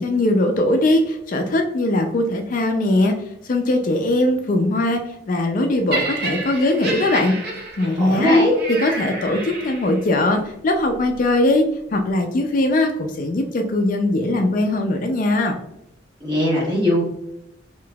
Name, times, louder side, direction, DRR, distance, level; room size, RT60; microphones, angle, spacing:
voice 1, 0.0-3.1 3.4-7.4 7.8-8.4 8.8-11.7 11.9-15.6, left 1 dB, 40° left, 4 dB, 0.3 m, -20 dB
Laughter, 5.9-10.1 10.9-11.1, right 2 dB, 50° right, 0.6 m, -30 dB
voice 2, 8.0-8.5 16.2-17.0, left 1 dB, 25° right, -5 dB, 1.3 m, -18 dB
3.7 x 2.6 x 2.2 m, 0.78 s
head